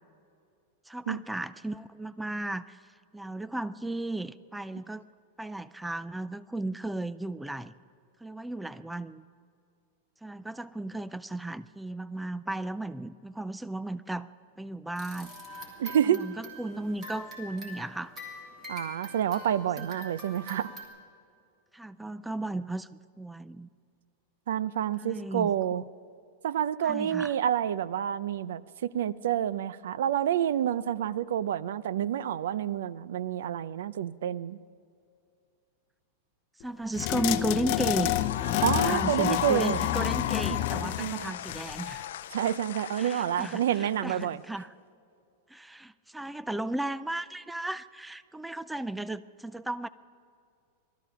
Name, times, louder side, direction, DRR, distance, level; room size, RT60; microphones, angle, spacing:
voice 1, 0.9-5.0 5.4-7.7 8.2-9.3 10.2-14.3 14.6-15.3 16.0-18.1 19.8-19.9 21.7-22.9 23.2-23.7 25.0-25.9 26.8-27.3 36.6-38.1 38.5-42.0 43.0-44.7 45.5-49.9, right 2 dB, 5° right, 15 dB, 0.3 m, -35 dB
sound 1, 15.0-20.8, equal, 20° right, 3.1 m, -44 dB
voice 2, 15.8-16.2 18.7-20.7 24.5-25.8 26.4-34.6 38.6-39.8 41.0-41.4 42.3-44.4, right 10 dB, 80° right, 18 dB, 0.5 m, -28 dB
sound 2, 37.0-42.0, left 14 dB, 40° left, 0.7 m, -29 dB
sound 3, 37.9-44.2, left 11 dB, 75° left, 0.4 m, -35 dB
19.0 x 13.5 x 5.7 m, 2.4 s
supercardioid pair, 160°, 0 cm